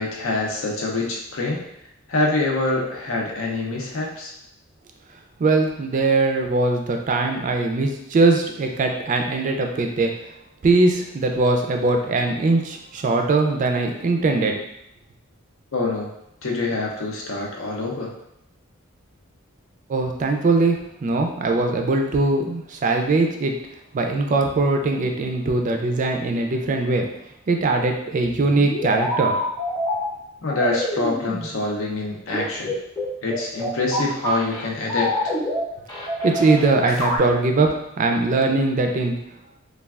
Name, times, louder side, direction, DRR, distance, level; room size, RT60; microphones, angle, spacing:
voice 1, 0.0-1.6 2.1-4.3 15.7-16.1 16.4-18.1 30.4-32.7 33.2-35.3, left 2 dB, 70° left, -1 dB, 0.6 m, -25 dB
voice 2, 5.4-10.1 10.6-14.6 19.9-23.5 23.9-27.1 27.5-29.4 36.2-39.2, right 3 dB, 40° right, 4 dB, 0.3 m, -21 dB
sound 1, 28.2-30.0 30.5-31.5 32.3-34.6 34.9-35.6 35.9-37.2, equal, 20° left, 0.7 m, -26 dB
3.2 x 2.3 x 2.3 m, 0.79 s
head